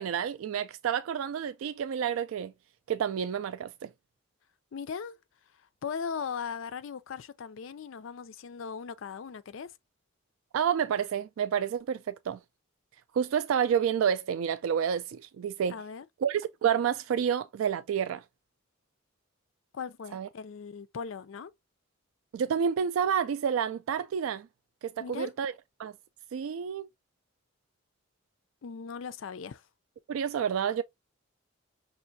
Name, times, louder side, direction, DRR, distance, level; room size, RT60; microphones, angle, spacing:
voice 1, 0.0-2.5 2.9-3.9 10.5-12.4 13.1-15.8 16.2-18.2 20.1-20.3 22.3-24.5 24.8-25.5 25.8-25.9 26.3-26.9 30.1-30.8, right 8 dB, 75° right, 0.3 m, -29 dB
voice 2, 4.7-5.2 5.8-9.7 15.7-16.0 19.7-21.5 25.0-25.3 28.6-29.6, left 6 dB, 65° left, 0.4 m, -38 dB
5.6 x 2.5 x 2.6 m
head